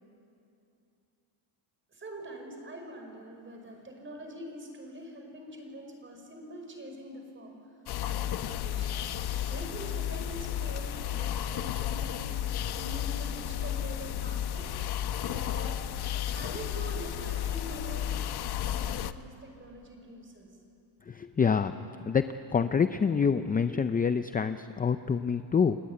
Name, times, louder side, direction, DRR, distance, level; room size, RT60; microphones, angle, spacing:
voice 1, 1.9-7.6 8.0-9.0 9.5-12.3 12.7-14.8 15.2-15.8 16.3-18.1 18.6-20.5, right 1 dB, 25° right, 3 dB, 5.6 m, -44 dB
sound 1, 7.9-19.1, left 10 dB, 55° left, 0.9 m, -33 dB
voice 2, 21.1-21.8 22.1-22.2 22.5-25.8, left 6 dB, 20° left, 10 dB, 0.5 m, -26 dB
29.5 x 19.0 x 9.5 m, 2.8 s
cardioid pair, 135°, 47 cm